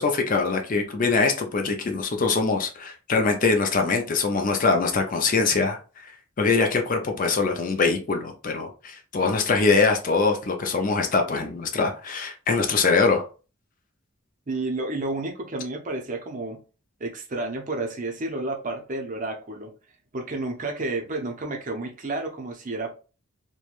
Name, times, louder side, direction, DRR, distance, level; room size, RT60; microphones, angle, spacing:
voice 1, 0.0-5.8 6.4-13.2, left 4 dB, 40° left, 0.4 m, -23 dB
voice 2, 14.5-16.6 17.0-19.7 20.1-22.9, right 2 dB, 35° right, 0.5 m, -31 dB
3.1 x 2.1 x 2.4 m
head